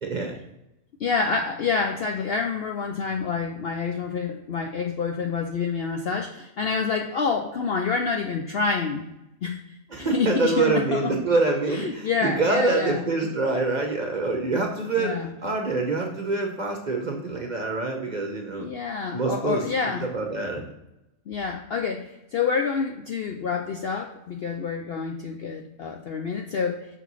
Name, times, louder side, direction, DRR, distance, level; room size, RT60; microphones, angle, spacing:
voice 1, 0.0-0.4 9.9-18.7 19.1-19.6 20.0-20.7, right 3 dB, 40° right, 2 dB, 0.8 m, -25 dB
voice 2, 1.0-9.0 9.4-9.6 10.0-11.1 11.6-13.0 15.0-15.3 18.6-20.0 21.3-26.9, left 5 dB, 60° left, 3 dB, 0.6 m, -27 dB
5.9 x 4.6 x 4.0 m, 0.90 s
omnidirectional pair, 1.5 m